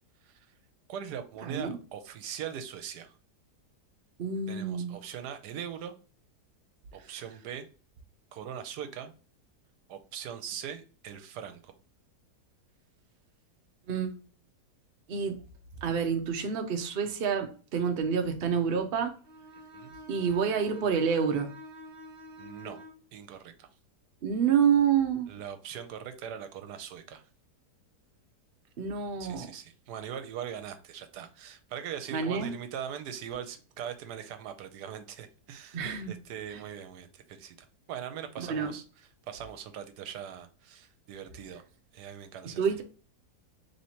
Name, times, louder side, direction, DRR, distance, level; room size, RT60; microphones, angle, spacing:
voice 1, 0.9-3.2 4.5-5.9 6.9-7.7 8.3-9.1 9.9-11.7 19.7-20.0 22.4-22.8 23.1-23.7 25.3-27.2 29.2-37.6 37.9-41.6 41.9-42.6, right 8 dB, 85° right, 1.2 m, -41 dB
voice 2, 1.5-1.8 4.2-4.9 13.9-14.2 15.1-15.3 15.8-19.1 20.1-21.5 24.2-25.3 28.8-29.5 32.1-32.5 35.7-36.1 38.4-38.7 42.5-42.8, right 7 dB, 55° right, 0.6 m, -28 dB
Bowed string instrument, 19.2-23.0, equal, 35° right, 1.4 m, -48 dB
3.2 x 2.8 x 4.3 m
omnidirectional pair, 1.8 m